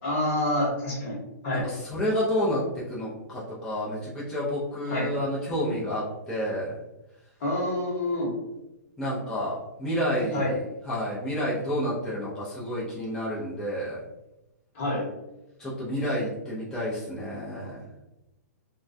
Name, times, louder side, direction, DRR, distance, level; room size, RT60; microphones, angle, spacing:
voice 1, 0.0-1.7 4.9-5.1 7.4-8.3 10.3-10.5 14.7-15.1, left 1 dB, 45° left, -4 dB, 1.0 m, -27 dB
voice 2, 1.5-6.7 9.0-10.6 10.9-14.0 15.6-17.8, equal, 5° left, -9 dB, 0.5 m, -30 dB
2.2 x 2.1 x 2.5 m, 0.96 s
hypercardioid pair, 160°, 9 cm